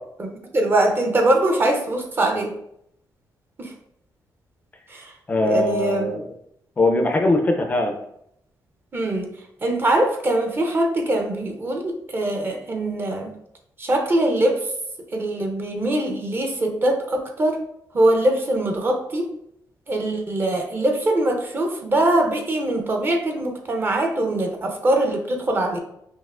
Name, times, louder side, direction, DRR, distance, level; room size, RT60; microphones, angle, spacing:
voice 1, 0.2-2.5 3.6-3.7 4.9-5.1 5.4-6.1 8.9-9.3 9.6-13.3 13.8-14.6 15.1-17.6 17.9-19.3 19.9-25.8, right 1 dB, 30° right, 3 dB, 0.6 m, -22 dB
voice 2, 5.3-6.2 6.8-7.9, left 2 dB, 25° left, 3 dB, 0.4 m, -20 dB
5.4 x 2.8 x 2.4 m, 0.74 s
wide cardioid pair, 160°, 7 cm